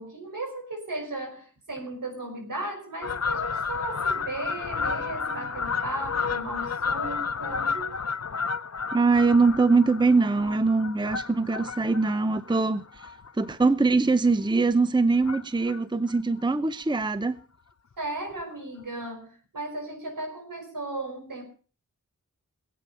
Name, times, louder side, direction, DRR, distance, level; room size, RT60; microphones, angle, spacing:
voice 1, 0.0-8.0 18.0-21.4, right 2 dB, 80° right, 5.3 m, -36 dB
Fowl, 3.0-13.8 14.3-14.5 15.2-15.8 16.1-16.2 16.4-16.5 16.8-16.9 17.2-17.4 18.4-18.5 19.0-19.1, left 5 dB, 50° left, 0.8 m, -32 dB
voice 2, 8.9-12.8 13.4-17.4, right 3 dB, 15° right, 0.6 m, -22 dB
20.0 x 8.7 x 5.4 m
wide cardioid pair, 70°, 33 cm